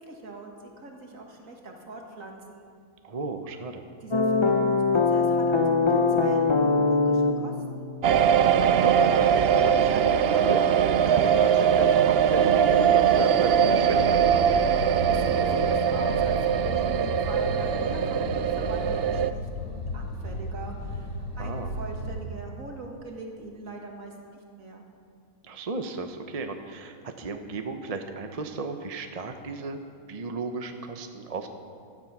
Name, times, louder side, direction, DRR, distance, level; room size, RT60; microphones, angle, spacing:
voice 1, 0.0-2.6 4.0-7.5 15.1-16.4 16.7-24.1 24.6-24.8, right 2 dB, 55° right, 1 dB, 2.3 m, -41 dB
voice 2, 3.0-3.8 8.6-14.4 21.4-21.7 25.4-29.8 30.1-31.5, right 3 dB, 30° right, 6 dB, 0.7 m, -35 dB
sound 1, 4.1-9.1, left 3 dB, 35° left, 0.4 m, -24 dB
sound 2, 8.0-19.3, right 8 dB, 85° right, 0.5 m, -21 dB
sound 3, 13.9-22.2, left 1 dB, 55° left, 2.6 m, -34 dB
15.5 x 13.5 x 6.0 m, 2.2 s
omnidirectional pair, 1.7 m